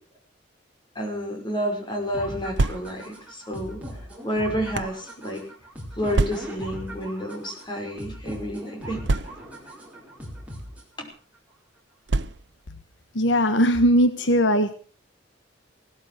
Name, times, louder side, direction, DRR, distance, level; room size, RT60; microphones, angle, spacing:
voice 1, 1.0-3.8 4.2-5.4 5.9-9.1 11.0-11.1, equal, 25° left, 2 dB, 5.6 m, -30 dB
sound 1, 2.1-11.1, equal, 5° right, 4.6 m, -39 dB
sound 2, 2.5-3.2 4.0-5.0 6.1-6.7 7.6-8.1 9.0-9.7 10.6-10.8 12.1-12.7, right 2 dB, 65° right, 0.7 m, -27 dB
voice 2, 13.1-14.7, equal, 75° left, 10 dB, 1.3 m, -19 dB
18.0 x 12.5 x 6.5 m, 0.43 s
head